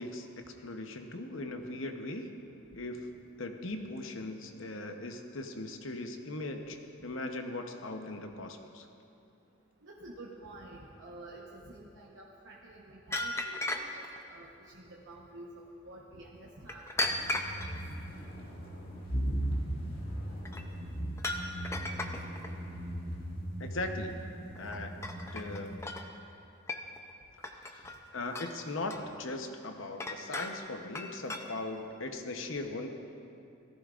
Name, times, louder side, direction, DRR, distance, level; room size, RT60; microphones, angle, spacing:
voice 1, 0.0-2.3 2.8-3.1 3.4-8.9 23.6-24.3 24.5-25.1 25.3-25.9 27.5-32.9, left 2 dB, 70° left, 5 dB, 0.9 m, -39 dB
voice 2, 9.8-17.7, right 2 dB, 60° right, -3 dB, 1.0 m, -50 dB
sound 1, 13.1-14.2 16.7-17.7 20.5-20.6 21.2-22.5 24.6-24.8 25.0-26.1 26.7-27.1 27.4-28.1 28.3-29.0 30.0-30.6 31.0-31.5, left 2 dB, 15° left, 0.5 m, -36 dB
sound 2, 17.0-25.8, right 1 dB, 45° left, 2.1 m, -38 dB
17.0 x 14.5 x 2.5 m, 2.7 s
head